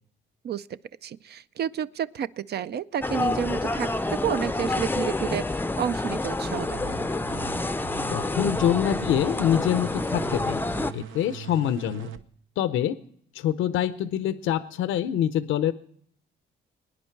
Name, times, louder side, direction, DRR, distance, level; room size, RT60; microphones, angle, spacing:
voice 1, 1.0-7.0, right 9 dB, 55° right, 15 dB, 0.5 m, -31 dB
sound 1, 3.0-10.9, left 2 dB, 10° left, 0.5 m, -28 dB
sound 2, 6.4-12.2, right 7 dB, 80° right, 0.9 m, -41 dB
voice 2, 8.1-10.6 10.9-12.1 12.6-13.0 13.3-15.7, left 10 dB, 85° left, 13 dB, 0.7 m, -25 dB
22.5 x 9.9 x 4.6 m, 0.63 s
cardioid pair, 90°, 20 cm